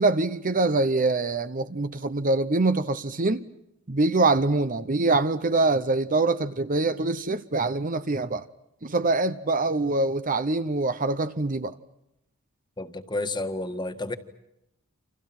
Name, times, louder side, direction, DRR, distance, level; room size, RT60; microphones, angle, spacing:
voice 1, 0.0-3.5 3.9-8.5 8.8-11.8, right 3 dB, 40° right, 0.9 m, -24 dB
voice 2, 12.8-14.2, left 2 dB, 20° left, 1.7 m, -31 dB
29.5 x 27.5 x 6.1 m
head